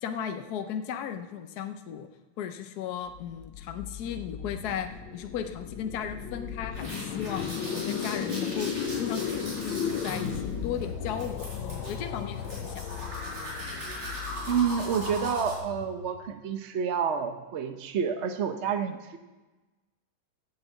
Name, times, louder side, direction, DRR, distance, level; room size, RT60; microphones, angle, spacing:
voice 1, 0.0-2.1 2.4-7.4 7.7-13.1, left 8 dB, 65° left, 7 dB, 1.1 m, -36 dB
sound 1, 3.1-16.3, left 7 dB, 85° left, 1.6 m, -36 dB
sound 2, 6.7-15.6, equal, 35° right, 6.0 m, -39 dB
voice 2, 14.5-19.2, right 7 dB, 60° right, 7 dB, 0.7 m, -29 dB
11.0 x 8.3 x 8.0 m, 1.2 s
omnidirectional pair, 2.1 m